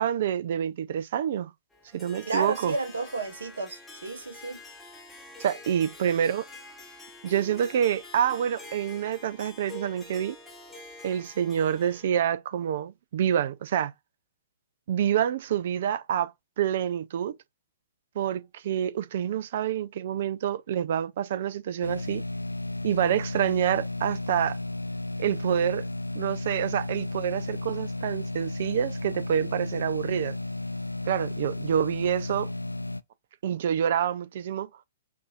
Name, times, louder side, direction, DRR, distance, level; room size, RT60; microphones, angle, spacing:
voice 1, 0.0-1.5 1.9-2.7 5.4-6.4 7.2-10.4 11.0-13.9 14.9-17.4 18.2-22.2 22.8-24.6 25.2-25.8 26.1-30.4 31.1-32.5 33.4-34.7, right 9 dB, 50° right, 0.4 m, -27 dB
Harp, 1.7-12.2, left 2 dB, 5° left, 1.1 m, -47 dB
voice 2, 2.3-4.6, right 3 dB, 70° right, 1.1 m, -32 dB
sound 1, 21.8-33.0, left 2 dB, 90° left, 0.3 m, -33 dB
5.3 x 2.7 x 2.4 m
figure-of-eight pair, 115°, 0 cm